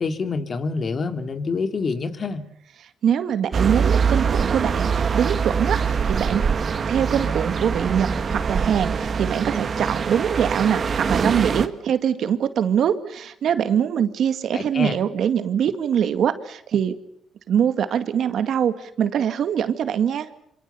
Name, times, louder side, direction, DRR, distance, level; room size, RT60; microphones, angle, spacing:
voice 1, 0.0-2.4 14.5-15.0, left 4 dB, 45° left, 8 dB, 2.7 m, -26 dB
voice 2, 3.0-6.5 6.9-17.0 17.5-20.3, right 8 dB, 65° right, 11 dB, 2.0 m, -23 dB
sound 1, 3.5-11.7, right 6 dB, 45° right, 1.8 m, -23 dB
26.5 x 26.0 x 7.0 m, 0.71 s
cardioid pair, 90°, 0 cm